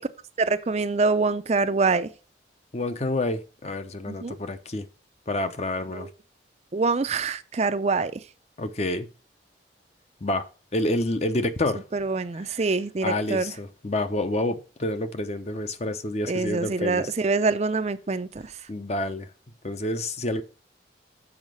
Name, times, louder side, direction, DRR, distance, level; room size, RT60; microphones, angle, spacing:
voice 1, 0.4-2.1 4.1-4.4 5.9-6.1 6.7-8.2 11.9-13.5 16.3-18.3, right 3 dB, 35° right, 0.5 m, -25 dB
voice 2, 2.7-4.9 5.3-6.1 8.6-9.1 10.2-10.4 10.7-11.8 12.3-12.5 13.0-17.1 18.7-19.3 19.6-20.4, left 1 dB, 35° left, 0.7 m, -28 dB
7.3 x 4.9 x 6.2 m
head